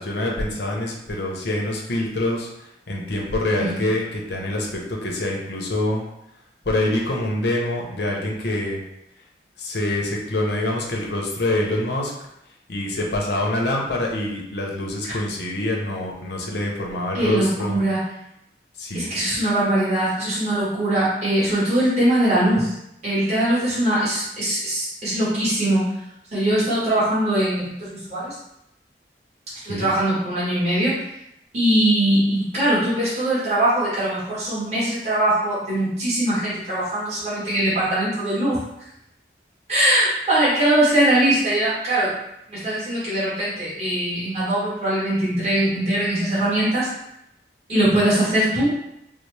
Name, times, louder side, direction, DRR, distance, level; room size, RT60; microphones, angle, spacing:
voice 1, 0.0-6.0 6.7-8.8 9.6-12.1 12.7-17.8 18.8-19.1 29.7-29.9, left 1 dB, 75° left, -1 dB, 0.7 m, -25 dB
voice 2, 17.1-18.0 18.9-22.7 23.0-25.8 26.3-28.3 29.6-31.0 31.5-38.6 39.7-42.1 42.5-46.9 47.7-48.7, right 1 dB, 40° right, -10 dB, 1.3 m, -21 dB
4.0 x 2.0 x 3.2 m, 0.81 s
head